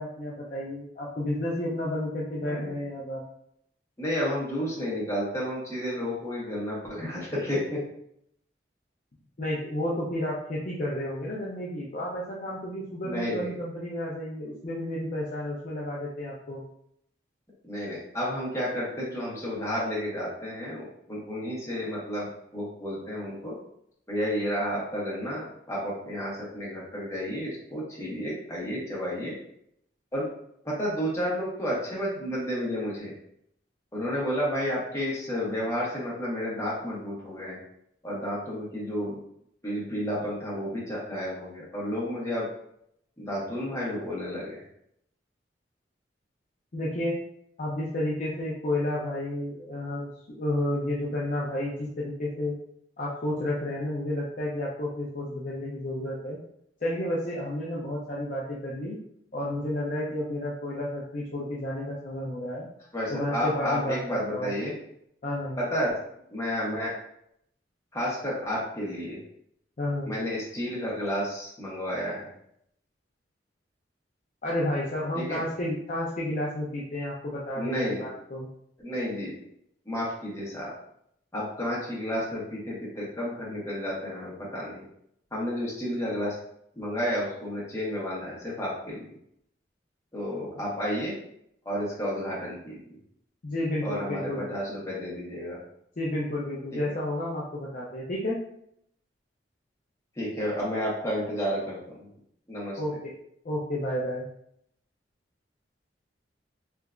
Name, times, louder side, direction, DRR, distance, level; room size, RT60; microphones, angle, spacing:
voice 1, 0.0-3.2 9.4-16.6 46.7-47.2 47.6-52.6 53.0-56.4 56.8-59.0 59.3-62.7 63.1-64.5 65.2-65.6 69.8-70.1 74.4-78.5 93.4-94.5 96.0-98.4 102.8-103.1 103.4-104.3, left 1 dB, 45° left, -5 dB, 0.5 m, -31 dB
voice 2, 2.4-2.7 4.0-7.9 13.0-13.5 17.6-23.5 24.1-29.3 30.1-30.3 30.6-33.1 33.9-37.6 38.0-39.2 39.6-42.5 43.2-44.6 62.9-64.7 65.6-65.9 66.3-66.9 67.9-69.2 70.0-72.3 75.2-75.4 77.5-78.1 78.8-79.3 79.8-80.7 81.3-84.8 85.3-86.3 86.8-89.2 90.1-91.1 91.6-93.0 93.8-95.6 100.2-102.1 102.5-102.8, equal, 15° left, -7 dB, 1.2 m, -31 dB
3.3 x 2.9 x 2.4 m, 0.72 s
head